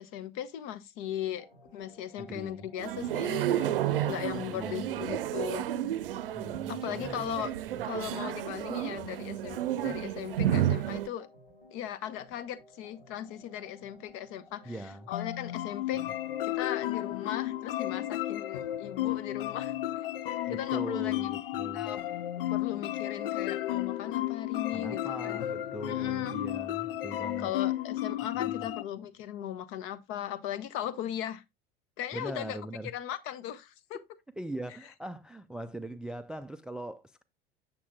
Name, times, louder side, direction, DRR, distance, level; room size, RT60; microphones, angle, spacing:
voice 1, 0.0-1.5 1.7-5.7 6.7-7.5 7.8-11.3 11.7-14.8 15.1-16.0 16.4-20.1 20.5-21.2 21.7-22.0 22.5-25.4 25.9-26.4 27.4-31.4 32.0-32.6 32.8-34.0, left 11 dB, 45° left, 0.9 m, -38 dB
sound 1, 1.4-18.0, left 1 dB, 90° left, 5.4 m, -58 dB
voice 2, 2.2-2.7 3.9-5.2 6.3-7.3 7.7-7.8 9.7-10.0 14.6-15.1 20.5-22.0 24.7-27.5 28.4-28.7 32.1-32.9 34.4-37.2, right 1 dB, 5° right, 0.4 m, -41 dB
sound 2, 2.8-11.1, right 11 dB, 70° right, 0.6 m, -31 dB
sound 3, 15.1-28.8, left 14 dB, 70° left, 0.5 m, -33 dB
8.3 x 6.8 x 2.3 m
figure-of-eight pair, 75°, 29 cm